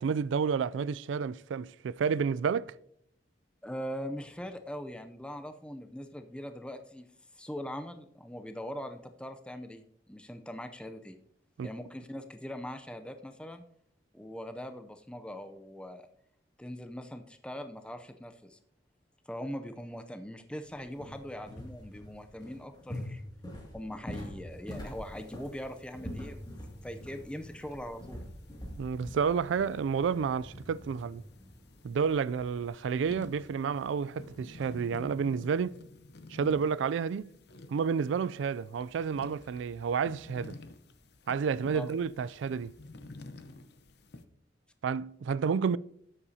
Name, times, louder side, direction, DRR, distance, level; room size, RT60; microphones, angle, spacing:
voice 1, 0.0-2.7 11.6-11.7 28.8-31.2 31.8-35.8 36.3-37.3 37.7-40.6 41.3-42.7 44.8-45.8, right 6 dB, 80° right, 0.3 m, -30 dB
voice 2, 3.6-7.1 7.3-11.2 11.6-13.6 14.1-16.1 16.6-18.6 19.3-23.2 23.7-26.4 26.8-28.2 41.7-41.9, equal, 5° left, 0.5 m, -41 dB
sound 1, 20.6-35.0, left 1 dB, 20° left, 2.3 m, -46 dB
sound 2, 24.7-44.2, left 2 dB, 60° left, 0.8 m, -52 dB
13.0 x 9.8 x 2.8 m
head